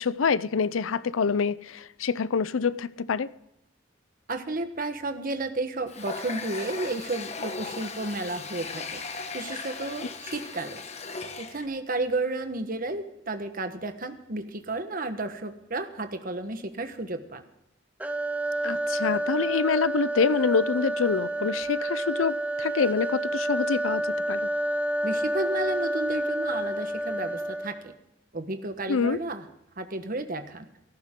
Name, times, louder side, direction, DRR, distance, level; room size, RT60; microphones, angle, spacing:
voice 1, 0.0-3.3 18.6-24.5 28.9-29.2, left 5 dB, 85° left, 0.5 m, -26 dB
voice 2, 4.3-9.0 9.3-10.8 11.4-17.4 25.0-27.9 28.3-29.5 29.8-30.7, right 2 dB, 45° right, 1.2 m, -32 dB
Water tap faucet, 5.9-11.7, left 4 dB, 35° left, 1.1 m, -37 dB
sound 1, 18.0-27.9, right 1 dB, 10° right, 0.8 m, -29 dB
17.0 x 14.0 x 3.7 m
head